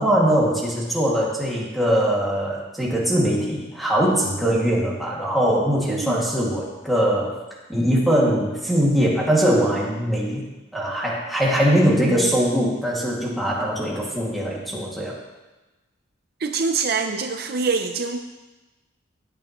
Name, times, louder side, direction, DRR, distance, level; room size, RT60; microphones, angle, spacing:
voice 1, 0.0-7.4 7.7-15.2, equal, ahead, -5 dB, 2.1 m, -21 dB
voice 2, 5.9-6.3 16.4-18.2, right 4 dB, 50° right, 6 dB, 0.6 m, -25 dB
16.0 x 8.9 x 3.0 m, 1.1 s
head